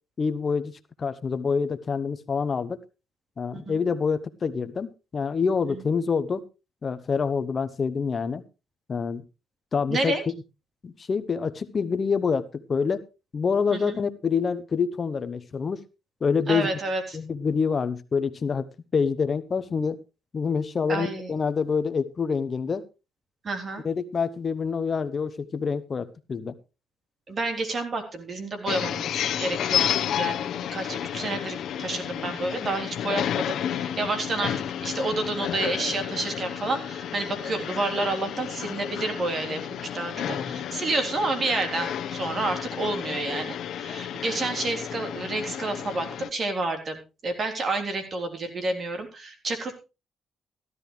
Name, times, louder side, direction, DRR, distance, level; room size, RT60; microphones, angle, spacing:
voice 1, 0.2-2.8 3.4-6.4 6.8-8.4 8.9-9.2 9.7-10.3 10.8-13.0 13.3-15.8 16.2-16.7 17.1-18.7 18.9-20.0 20.3-22.8 23.8-26.5 40.2-40.7, left 5 dB, 40° left, 13 dB, 0.9 m, -26 dB
voice 2, 9.9-10.2 13.7-14.0 16.5-17.2 20.9-21.3 23.4-23.8 27.3-34.5 34.8-49.8, right 2 dB, 45° right, 5 dB, 3.7 m, -30 dB
sound 1, 28.7-46.3, left 10 dB, 75° left, 1.1 m, -31 dB
15.0 x 12.5 x 3.3 m, 0.29 s
cardioid pair, 90°, 0 cm